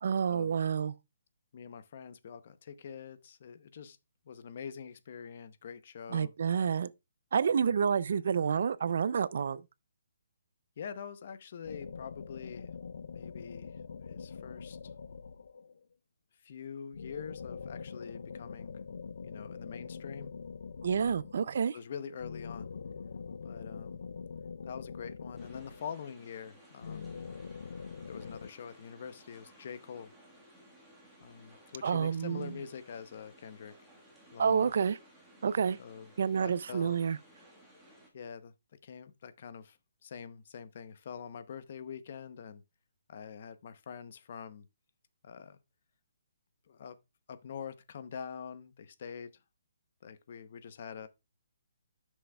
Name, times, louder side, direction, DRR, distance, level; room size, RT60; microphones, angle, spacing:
voice 1, 0.0-0.9 6.1-6.9 7.3-9.6 20.8-21.8 31.8-32.5 34.4-35.0 35.4-35.8 36.2-37.2, right 6 dB, 50° right, 0.4 m, -29 dB
voice 2, 1.5-4.0 4.3-6.3 10.8-12.7 13.1-14.8 16.4-18.8 19.2-20.3 21.7-22.7 23.4-24.0 24.6-27.2 28.0-30.1 31.2-33.7 34.3-34.7 35.8-36.1 36.4-37.0 38.1-38.5 38.8-39.8 40.0-42.6 43.1-44.7 45.2-45.6 46.7-47.0 47.3-49.3 50.0-51.1, left 7 dB, 40° left, 0.7 m, -45 dB
sound 1, 11.6-15.8 16.9-21.6 22.2-26.2 26.8-28.5, left 5 dB, 65° left, 0.4 m, -44 dB
sound 2, 25.4-38.1, right 1 dB, 5° right, 1.5 m, -59 dB
11.0 x 6.2 x 2.3 m
hypercardioid pair, 175°, 0 cm